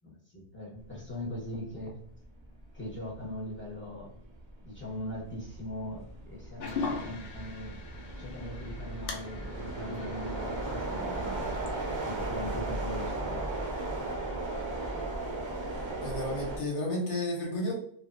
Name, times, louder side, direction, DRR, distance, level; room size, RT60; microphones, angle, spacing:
voice 1, 0.0-2.0 2.7-4.2 4.6-7.8 8.2-11.4 12.0-13.6, left 1 dB, 10° left, -3 dB, 0.7 m, -40 dB
sound 1, 1.6-1.8 2.2-16.6, right 2 dB, 35° right, 0.6 m, -36 dB
sound 2, 6.6-12.1, left 4 dB, 60° left, 0.8 m, -41 dB
voice 2, 16.0-17.7, left 1 dB, 80° left, -2 dB, 1.3 m, -32 dB
2.8 x 2.5 x 2.5 m, 0.66 s
omnidirectional pair, 1.1 m